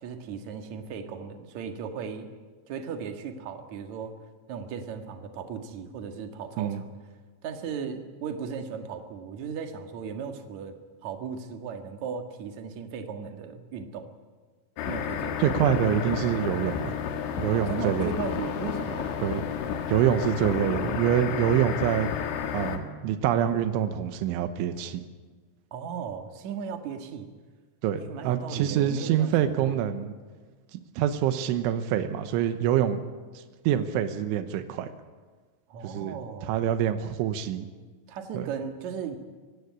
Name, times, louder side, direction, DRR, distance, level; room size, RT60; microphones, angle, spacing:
voice 1, 0.0-2.3 2.7-4.1 4.5-6.9 7.4-10.8 11.0-14.1 14.9-15.5 17.5-19.2 25.7-27.3 28.0-29.7 35.7-36.6 38.1-39.2, right 6 dB, 55° right, 6 dB, 2.2 m, -36 dB
sound 1, 14.8-22.8, left 7 dB, 80° left, 4.1 m, -31 dB
voice 2, 15.4-16.9 17.4-18.1 19.2-19.4 19.9-22.1 22.5-25.0 27.8-30.1 30.7-33.0 33.4-34.9 35.8-37.7 38.4-38.5, right 10 dB, 85° right, 10 dB, 3.5 m, -26 dB
24.5 x 17.0 x 9.6 m, 1.4 s
omnidirectional pair, 5.4 m